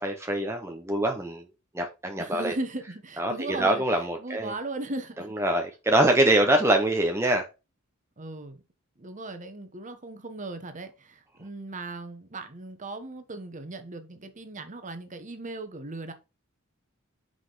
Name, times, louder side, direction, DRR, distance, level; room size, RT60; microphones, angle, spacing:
voice 1, 0.0-1.4 1.7-2.5 3.2-4.5 5.3-7.4, right 1 dB, 15° right, 0.7 m, -24 dB
voice 2, 2.2-3.8 4.2-5.3 8.2-8.6 9.0-16.1, right 2 dB, 35° right, 1.1 m, -37 dB
5.9 x 4.9 x 3.9 m
head